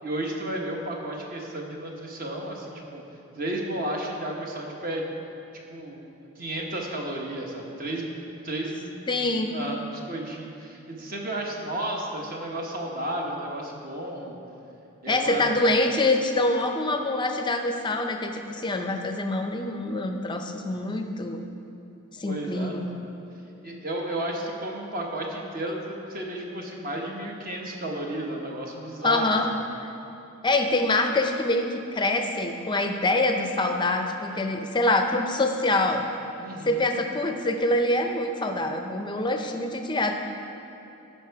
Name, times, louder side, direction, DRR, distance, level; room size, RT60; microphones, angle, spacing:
voice 1, 0.0-3.0 3.4-5.0 5.7-8.1 8.4-9.2 9.5-14.4 15.0-15.5 22.3-22.7 23.6-29.4 36.4-37.0, right 1 dB, 40° right, 0 dB, 1.1 m, -33 dB
voice 2, 9.1-9.5 15.1-21.4 22.2-22.9 29.0-29.5 29.8-29.9 30.4-36.0 36.7-40.2, left 2 dB, 20° left, 5 dB, 0.5 m, -25 dB
13.0 x 5.6 x 4.6 m, 3.0 s
head